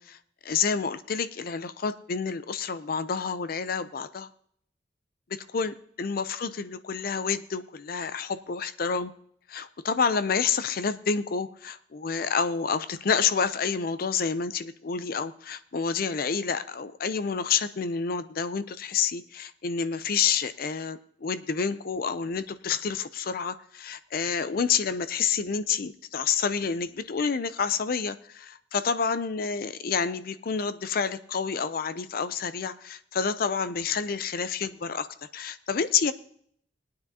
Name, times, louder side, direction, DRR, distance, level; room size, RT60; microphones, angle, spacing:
voice 1, 0.0-4.3 5.3-9.1 9.5-35.1 35.3-36.1, left 6 dB, 50° left, 13 dB, 0.5 m, -29 dB
20.5 x 9.4 x 2.8 m, 0.64 s
head